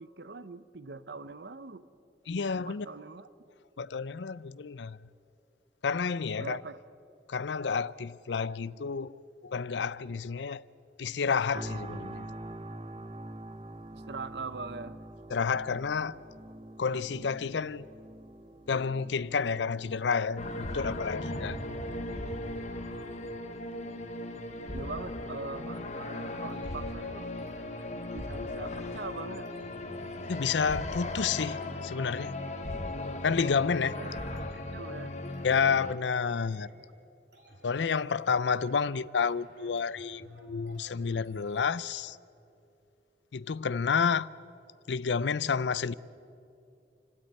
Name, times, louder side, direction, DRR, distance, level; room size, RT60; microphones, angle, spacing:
voice 1, 0.0-1.9 2.5-3.3 6.4-6.8 13.9-15.0 24.7-27.3 27.9-29.5 32.6-32.9 34.0-35.2, right 3 dB, 75° right, 0.8 m, -42 dB
voice 2, 2.3-2.9 3.8-5.0 5.8-6.6 7.3-9.1 9.4-10.6 11.0-12.3 15.3-16.2 16.8-17.8 18.7-21.6 30.3-32.3 33.2-34.0 35.4-36.7 37.6-42.2 43.3-44.3 44.9-45.9, left 5 dB, 85° left, 0.5 m, -30 dB
sound 1, 11.5-26.6 27.0-27.2, right 1 dB, 30° right, 0.7 m, -47 dB
sound 2, 20.4-36.0, left 2 dB, 40° left, 1.3 m, -37 dB
sound 3, 26.5-42.2, equal, 90° right, 4.7 m, -57 dB
29.0 x 13.0 x 9.4 m
head